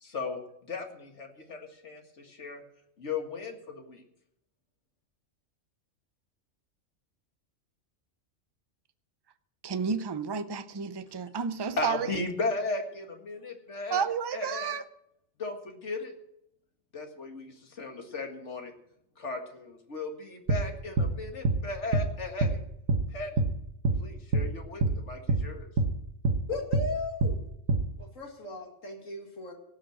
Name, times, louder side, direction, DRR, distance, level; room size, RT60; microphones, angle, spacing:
voice 1, 0.0-0.4 0.7-1.6 1.8-2.6 3.0-4.0 11.8-14.0 14.3-14.8 15.4-16.1 16.9-18.7 19.2-22.6 23.1-23.3 24.0-25.7, left 3 dB, 65° left, 2.2 m, -36 dB
voice 2, 9.6-12.2 13.9-14.8, right 6 dB, 25° right, 0.5 m, -31 dB
sound 1, 20.5-20.6 21.0-21.1 21.4-21.6 21.9-22.1 22.4-22.6 22.9-23.0 23.4-23.5 23.8-24.0 24.3-24.5 24.8-25.0 25.3-25.4 25.8-25.9 26.2-26.4 26.7-26.9 27.2-27.4 27.7-27.8, right 3 dB, 80° right, 1.5 m, -25 dB
voice 3, 26.5-27.4 28.0-29.5, left 2 dB, 90° left, 2.5 m, -36 dB
17.5 x 6.3 x 7.9 m
omnidirectional pair, 1.3 m